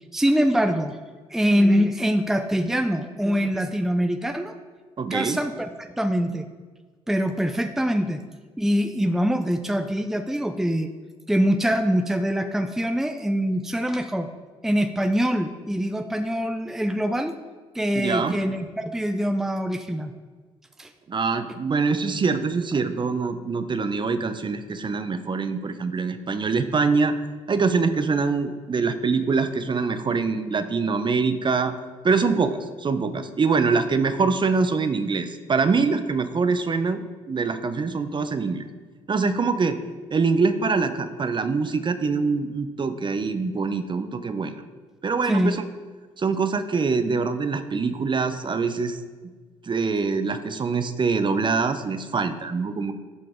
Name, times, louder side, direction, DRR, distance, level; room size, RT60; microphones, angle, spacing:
voice 1, 0.1-1.0 1.3-4.6 5.1-6.5 7.1-8.2 8.6-10.9 11.3-14.3 14.6-17.3 17.7-20.1 20.8-20.9 45.3-45.6, equal, 5° right, 7 dB, 0.6 m, -24 dB
voice 2, 5.0-5.4 18.0-18.4 21.1-27.1 27.5-31.7 32.0-38.6 39.1-39.8 40.1-44.6 45.0-45.7 46.2-49.0 49.6-52.9, right 4 dB, 35° right, 10 dB, 0.8 m, -24 dB
11.5 x 5.7 x 3.7 m, 1.4 s
hypercardioid pair, 55°, 14 cm